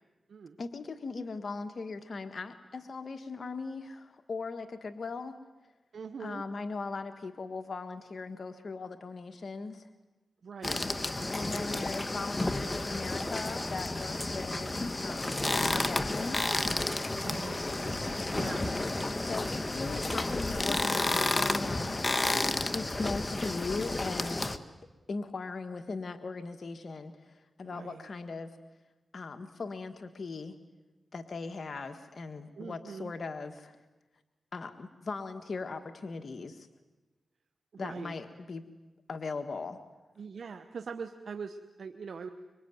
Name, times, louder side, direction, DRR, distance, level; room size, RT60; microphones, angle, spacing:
voice 1, 0.6-5.4 6.2-9.9 11.3-14.7 15.0-15.5 15.7-16.6 18.3-18.6 19.2-21.9 22.6-24.4 25.1-28.6 29.1-30.6 31.1-33.8 34.5-36.7 37.8-38.6 39.1-39.8, left 4 dB, 60° left, 6 dB, 1.5 m, -39 dB
voice 2, 5.9-6.4 10.4-10.8 17.2-18.7 27.6-28.1 32.6-33.1 37.7-38.1 40.2-42.3, right 5 dB, 75° right, 8 dB, 1.1 m, -42 dB
sound 1, 10.6-24.6, left 2 dB, 30° left, 1.7 m, -31 dB
26.0 x 23.5 x 9.4 m, 1.1 s
cardioid pair, 50°, 0 cm